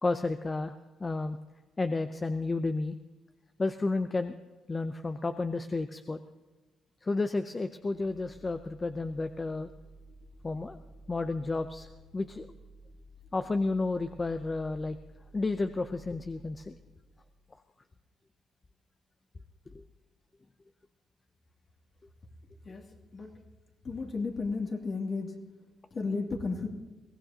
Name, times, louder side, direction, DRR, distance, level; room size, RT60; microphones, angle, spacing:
voice 1, 0.0-0.7 1.0-1.4 1.8-3.0 3.6-4.4 4.7-6.2 7.0-9.7 10.4-10.8 11.1-11.9 12.1-12.5 13.3-15.0 15.3-16.8 19.7-19.8, left 3 dB, 25° left, 9 dB, 0.6 m, -31 dB
sound 1, 7.8-17.4, right 1 dB, 85° left, 2.2 m, -54 dB
voice 2, 23.8-25.3 25.9-26.7, left 4 dB, 45° left, 1 dB, 2.5 m, -33 dB
22.5 x 17.0 x 2.9 m, 1.2 s
cardioid pair, 90°, 0 cm